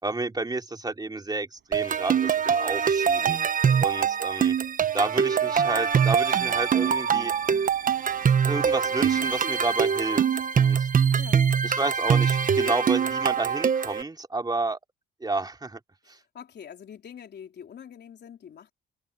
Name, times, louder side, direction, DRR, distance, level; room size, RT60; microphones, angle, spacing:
voice 1, 0.0-3.4 3.8-4.6 4.9-7.3 8.4-10.2 10.6-10.9 11.6-14.8 15.2-15.8 16.1-16.2, right 3 dB, 20° right, 3.3 m, -30 dB
sound 1, 1.5-2.0 5.2-9.5, right 11 dB, 70° right, 6.1 m, -53 dB
sound 2, 1.7-14.0, right 7 dB, 45° right, 1.2 m, -23 dB
voice 2, 11.2-11.5 12.5-12.8 16.0-18.7, left 8 dB, 60° left, 4.2 m, -44 dB
open air
cardioid pair, 90°, 20 cm